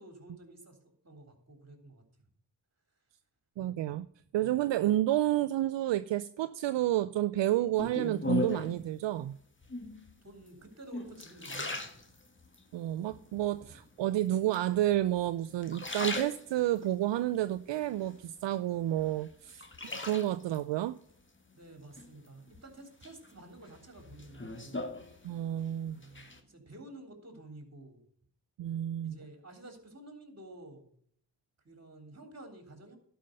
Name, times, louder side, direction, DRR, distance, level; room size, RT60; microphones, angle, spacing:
voice 1, 0.0-2.3 4.4-4.6 10.2-12.0 13.6-13.8 21.5-24.9 25.8-28.1 29.0-30.9 31.6-33.0, right 2 dB, 35° right, 5 dB, 3.3 m, -51 dB
voice 2, 3.6-4.1 4.3-9.4 12.7-19.7 20.0-21.0 25.2-26.0 28.6-29.2, right 13 dB, 75° right, 14 dB, 0.6 m, -30 dB
sound 1, 7.8-8.9 9.6-10.1 10.7-12.6 13.1-13.7 14.5-15.2 15.5-16.9 17.3-18.6 19.0-20.6 22.0-22.6 23.0-25.6 25.9-26.4, left 2 dB, 25° left, 1.8 m, -38 dB
11.5 x 5.7 x 6.5 m, 0.64 s
supercardioid pair, 45°, 44 cm